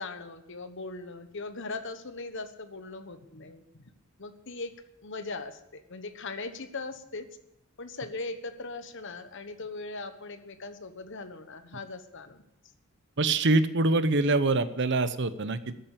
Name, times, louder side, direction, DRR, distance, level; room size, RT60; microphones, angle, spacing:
voice 1, 0.0-3.9 4.2-4.7 5.0-7.3 7.8-12.4, left 3 dB, 60° left, 10 dB, 1.2 m, -39 dB
voice 2, 13.2-15.7, right 2 dB, 55° right, 13 dB, 0.8 m, -24 dB
13.5 x 8.9 x 8.3 m, 0.83 s
head